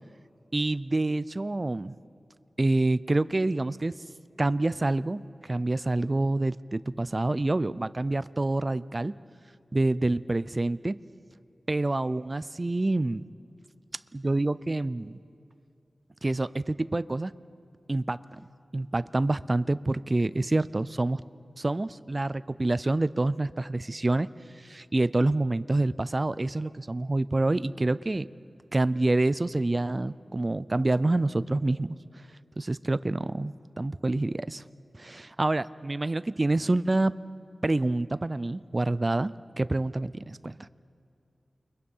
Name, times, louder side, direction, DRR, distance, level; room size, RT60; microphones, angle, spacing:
voice 1, 0.5-2.0 2.6-4.0 4.4-9.1 9.7-11.0 11.7-13.2 14.1-15.2 16.2-17.3 17.9-18.2 18.7-21.2 21.6-24.3 24.6-28.3 28.7-32.0 32.6-34.6 35.0-37.1 37.6-40.7, right 2 dB, 30° right, 16 dB, 0.5 m, -27 dB
29.5 x 23.0 x 5.5 m, 2.6 s
wide cardioid pair, 100°, 0 cm